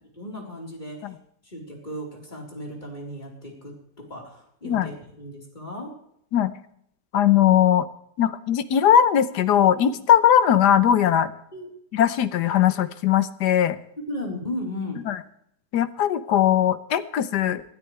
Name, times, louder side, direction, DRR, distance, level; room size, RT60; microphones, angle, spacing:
voice 1, 0.2-1.1 1.4-3.7 4.1-5.9 11.5-11.7 14.1-15.0, left 1 dB, 25° left, -1 dB, 4.3 m, -35 dB
voice 2, 7.1-7.9 8.2-11.3 11.9-13.8 15.1-15.2 15.7-17.6, left 10 dB, 70° left, 13 dB, 1.4 m, -19 dB
19.5 x 13.5 x 3.3 m, 0.71 s
omnidirectional pair, 1.9 m